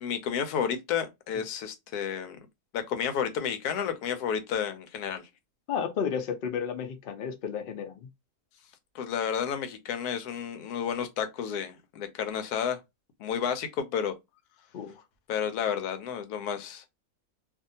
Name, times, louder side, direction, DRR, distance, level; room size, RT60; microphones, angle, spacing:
voice 1, 0.0-2.4 2.7-5.3 8.9-12.8 13.2-14.1 15.3-16.8, left 8 dB, 80° left, 1.1 m, -31 dB
voice 2, 5.7-8.1 14.7-14.9, left 7 dB, 65° left, 0.5 m, -32 dB
2.7 x 2.4 x 2.6 m
omnidirectional pair, 1.6 m